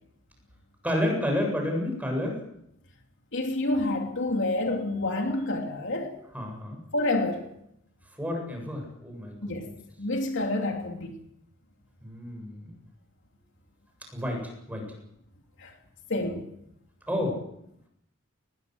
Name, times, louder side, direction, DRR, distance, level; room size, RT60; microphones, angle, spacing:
voice 1, 0.8-2.4 6.3-6.8 8.2-9.7 12.0-12.7 14.1-14.9 17.1-17.4, left 1 dB, 10° right, 7.5 m, -30 dB
voice 2, 3.3-6.1 6.9-7.4 9.4-9.7 10.0-11.2 15.6-15.7 16.1-16.5, left 2 dB, 60° left, 3.0 m, -28 dB
20.5 x 19.5 x 7.9 m
head